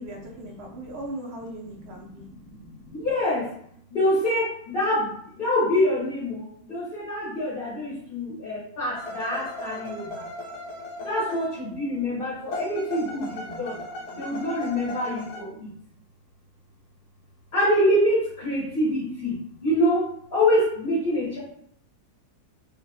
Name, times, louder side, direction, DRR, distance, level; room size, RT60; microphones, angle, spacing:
voice 1, 0.0-2.3, right 1 dB, 80° right, 0 dB, 0.5 m, -38 dB
voice 2, 2.9-3.5 3.9-10.3 11.0-13.8 14.1-15.7 17.5-21.4, left 1 dB, 40° left, -9 dB, 1.1 m, -25 dB
sound 1, 9.0-11.9 12.5-15.4, left 1 dB, 75° left, 1.1 m, -37 dB
2.7 x 2.4 x 3.3 m, 0.66 s
omnidirectional pair, 1.7 m